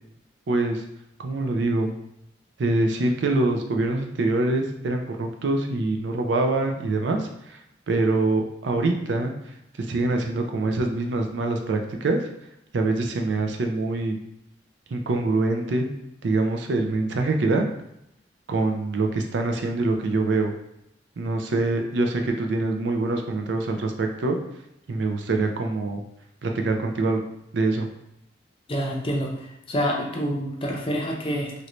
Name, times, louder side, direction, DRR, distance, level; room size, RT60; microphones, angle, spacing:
voice 1, 0.5-0.8 1.2-1.9 2.6-12.2 12.7-14.2 14.9-15.9 16.2-17.7 18.5-20.5 21.2-24.4 24.9-26.0 26.4-27.2 27.5-27.9, right 2 dB, 75° right, 4 dB, 0.4 m, -24 dB
voice 2, 28.7-31.5, equal, 30° left, 0 dB, 0.5 m, -27 dB
3.1 x 2.6 x 3.0 m, 0.81 s
head